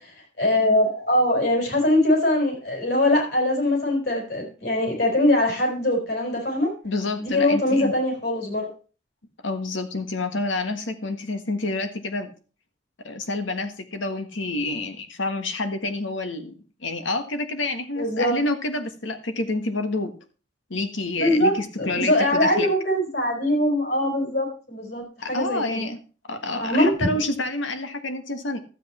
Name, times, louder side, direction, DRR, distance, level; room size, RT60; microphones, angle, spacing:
voice 1, 0.4-6.7 7.2-8.7 18.0-18.4 21.2-25.8 26.6-26.9, left 1 dB, 55° left, 1 dB, 4.7 m, -22 dB
voice 2, 6.8-7.9 9.4-12.3 13.0-16.5 16.8-20.1 20.7-22.7 25.2-26.0 26.3-28.6, left 2 dB, 85° left, 8 dB, 1.6 m, -28 dB
12.0 x 8.1 x 4.3 m, 0.36 s
head